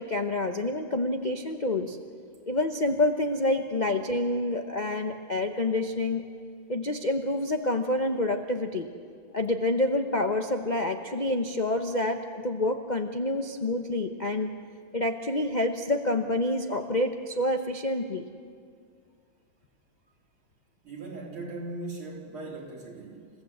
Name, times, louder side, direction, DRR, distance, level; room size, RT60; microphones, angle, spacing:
voice 1, 0.0-2.0 2.5-6.2 6.7-8.9 9.3-14.5 14.9-18.2, left 2 dB, 80° left, 5 dB, 0.4 m, -28 dB
voice 2, 20.8-23.3, right 2 dB, 90° right, -2 dB, 4.5 m, -39 dB
28.5 x 16.0 x 7.8 m, 2.2 s
omnidirectional pair, 2.3 m